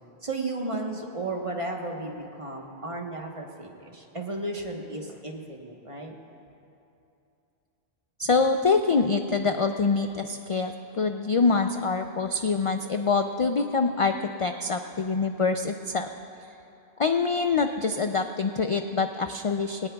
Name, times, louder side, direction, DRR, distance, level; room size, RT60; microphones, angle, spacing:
voice 1, 0.2-6.1, right 2 dB, 30° right, 1 dB, 1.2 m, -34 dB
voice 2, 8.2-16.1 17.0-19.9, left 4 dB, 55° left, 6 dB, 0.3 m, -25 dB
20.5 x 18.0 x 2.3 m, 2.7 s
omnidirectional pair, 1.1 m